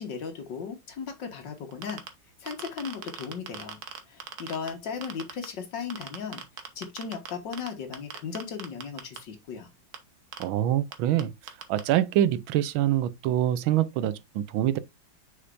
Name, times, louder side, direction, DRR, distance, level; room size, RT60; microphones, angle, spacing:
voice 1, 0.0-2.0 2.4-3.8 4.1-6.4 6.8-9.7, left 6 dB, 65° left, 2.0 m, -36 dB
sound 1, 1.7-2.1 2.5-4.7 5.0-5.5 5.9-7.7 7.9-9.2 9.9-10.0 10.3-10.4 10.9-11.0 11.2-11.3 11.5-11.8, right 8 dB, 55° right, 1.4 m, -38 dB
voice 2, 10.4-11.3 11.7-14.8, right 12 dB, 90° right, 1.4 m, -25 dB
6.5 x 5.8 x 2.5 m
omnidirectional pair, 2.2 m